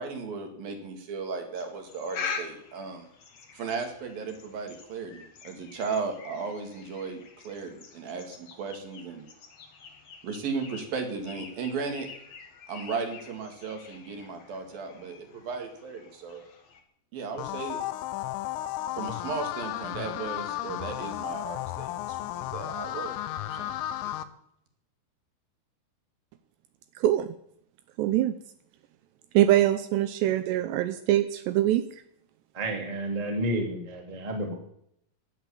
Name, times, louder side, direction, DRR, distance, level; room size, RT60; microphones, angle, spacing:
voice 1, 0.0-3.1 3.5-9.3 10.2-12.1 12.7-16.4 17.1-17.8 19.0-23.1 23.5-23.7, right 4 dB, 55° right, 5 dB, 3.5 m, -35 dB
sound 1, 1.5-16.8, left 5 dB, 60° left, 1.7 m, -44 dB
sound 2, 17.4-24.2, left 13 dB, 85° left, 3.4 m, -34 dB
voice 2, 27.0-27.3 28.0-28.3 29.3-31.8, right 13 dB, 90° right, 10 dB, 2.4 m, -23 dB
voice 3, 32.5-34.5, right 1 dB, 15° right, 1 dB, 1.6 m, -30 dB
16.5 x 11.0 x 7.1 m, 0.70 s
omnidirectional pair, 6.0 m